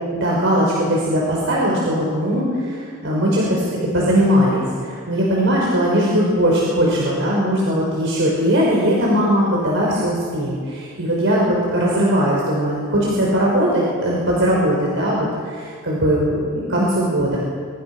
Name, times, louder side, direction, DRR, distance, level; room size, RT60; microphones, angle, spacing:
voice 1, 0.1-3.7 3.9-17.4, equal, 65° right, -4 dB, 5.5 m, -19 dB
26.0 x 23.5 x 6.2 m, 2.1 s
head